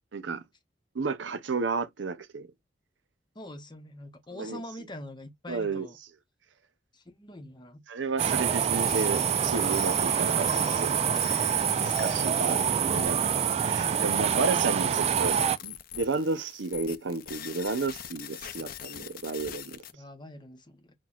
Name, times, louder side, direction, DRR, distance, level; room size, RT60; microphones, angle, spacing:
voice 1, 0.1-0.4 0.9-2.5 4.3-4.9 5.5-5.9 7.9-19.8, right 4 dB, 85° right, 0.7 m, -32 dB
voice 2, 3.4-6.0 6.9-7.8 19.9-20.9, left 1 dB, 25° left, 0.8 m, -44 dB
sound 1, 8.2-15.6, right 8 dB, 35° right, 0.3 m, -26 dB
sound 2, 8.7-19.9, left 11 dB, 55° left, 0.5 m, -43 dB
5.9 x 2.2 x 2.4 m
head